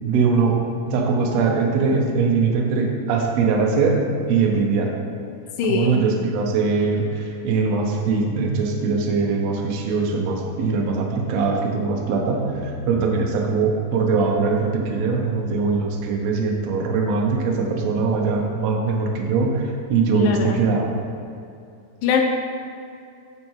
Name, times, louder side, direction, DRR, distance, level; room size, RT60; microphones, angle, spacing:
voice 1, 0.0-4.9 5.7-20.9, right 4 dB, 75° right, 0 dB, 1.6 m, -21 dB
voice 2, 5.6-6.0 20.1-20.6 22.0-22.2, left 4 dB, 80° left, 2 dB, 2.3 m, -21 dB
9.1 x 6.5 x 3.1 m, 2.5 s
omnidirectional pair, 4.1 m